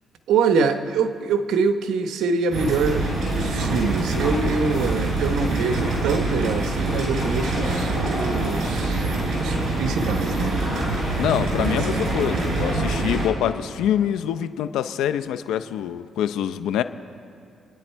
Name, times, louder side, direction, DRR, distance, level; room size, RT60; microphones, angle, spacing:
voice 1, 0.3-9.0 9.4-10.6 11.5-12.4, right 4 dB, 80° right, 8 dB, 1.0 m, -25 dB
sound 1, 2.5-13.3, right 2 dB, 60° right, 4.6 m, -24 dB
voice 2, 11.2-16.8, left 10 dB, 85° left, 12 dB, 0.6 m, -25 dB
28.5 x 9.8 x 4.5 m, 2.4 s
cardioid pair, 90°, 0 cm